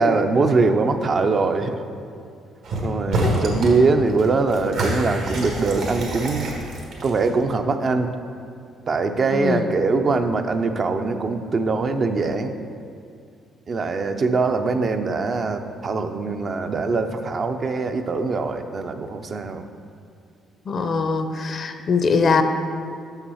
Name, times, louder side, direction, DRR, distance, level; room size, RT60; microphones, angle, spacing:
voice 1, 0.0-1.8 2.8-6.6 7.0-8.1 8.9-12.5 13.7-19.6, right 3 dB, 45° right, 7 dB, 0.5 m, -22 dB
sound 1, 2.6-2.8 3.1-3.8 4.1-7.4, right 1 dB, 70° right, 1.4 m, -26 dB
voice 2, 9.3-9.7 20.7-22.4, left 4 dB, 50° left, 8 dB, 0.6 m, -22 dB
6.2 x 5.7 x 5.6 m, 2.3 s
cardioid pair, 85°, 0 cm